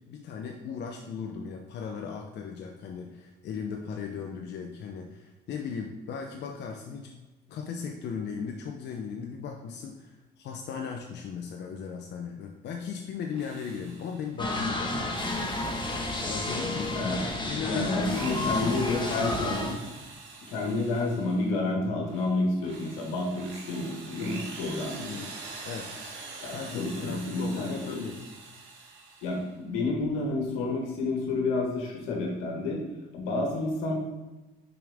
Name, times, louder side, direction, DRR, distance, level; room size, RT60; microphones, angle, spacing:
voice 1, 0.1-7.1 7.5-15.5 16.3-17.0 17.5-19.3 24.9-25.4 25.6-26.0 26.5-28.2, left 6 dB, 60° left, 2 dB, 0.7 m, -37 dB
Drill, 13.2-14.4 14.9-17.3 17.8-21.6 22.0-29.5, right 4 dB, 70° right, 1.3 m, -45 dB
sound 1, 14.4-19.8, left 2 dB, 25° left, 1.3 m, -31 dB
voice 2, 16.9-17.3 17.6-19.8 20.5-25.1 26.4-28.0 29.2-32.8 33.1-34.0, left 2 dB, 85° left, 0 dB, 1.5 m, -30 dB
5.9 x 5.0 x 3.5 m, 1.1 s
supercardioid pair, 65°, 20 cm